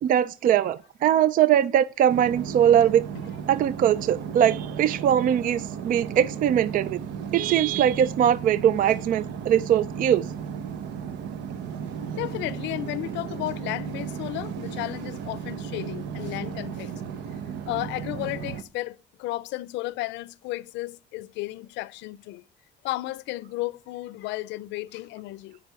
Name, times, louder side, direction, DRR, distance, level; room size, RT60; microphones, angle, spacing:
voice 1, 0.0-3.1 3.5-7.0 7.3-10.3 17.5-17.6, right 10 dB, 50° right, 0.4 m, -21 dB
sound 1, 2.1-18.6, right 7 dB, 75° right, 0.9 m, -35 dB
voice 2, 12.1-16.9 17.7-22.4 22.8-25.6, left 18 dB, 85° left, 0.5 m, -33 dB
11.5 x 5.2 x 8.1 m
cardioid pair, 115°, 18 cm